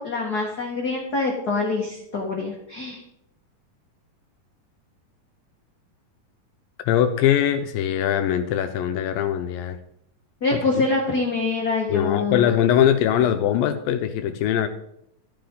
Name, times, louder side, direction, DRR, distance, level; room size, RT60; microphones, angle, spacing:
voice 1, 0.0-3.0 10.4-12.5, left 3 dB, 45° left, -2 dB, 1.4 m, -25 dB
voice 2, 6.8-9.8 11.9-14.7, left 10 dB, 80° left, 7 dB, 2.3 m, -21 dB
13.5 x 10.5 x 3.8 m, 0.78 s
omnidirectional pair, 4.1 m